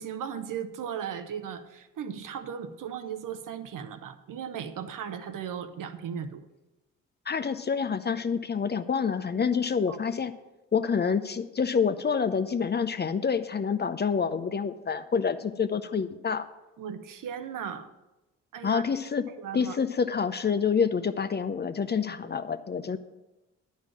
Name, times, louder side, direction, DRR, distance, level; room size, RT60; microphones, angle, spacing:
voice 1, 0.0-6.5 9.9-10.0 16.8-17.9 18.5-18.8 19.4-19.8, right 8 dB, 55° right, 10 dB, 1.0 m, -37 dB
voice 2, 7.3-10.3 10.7-16.5 18.6-19.2 19.5-23.0, left 6 dB, 25° left, 11 dB, 0.6 m, -27 dB
10.5 x 5.6 x 7.3 m, 1.0 s
hypercardioid pair, 45°, 37 cm